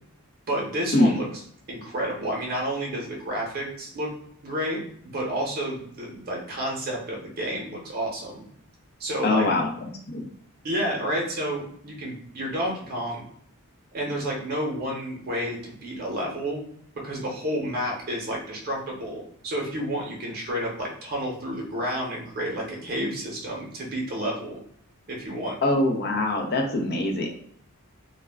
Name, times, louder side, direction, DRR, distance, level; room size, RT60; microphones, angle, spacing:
voice 1, 0.5-1.3 1.7-4.1 4.4-4.8 5.1-8.4 9.0-9.5 10.6-13.2 13.9-16.6 17.0-24.5 25.1-25.6, equal, 40° right, -2 dB, 0.7 m, -30 dB
voice 2, 9.2-9.7 10.1-10.3 25.6-27.3, left 2 dB, 45° left, 3 dB, 0.5 m, -23 dB
2.2 x 2.1 x 3.3 m, 0.65 s
head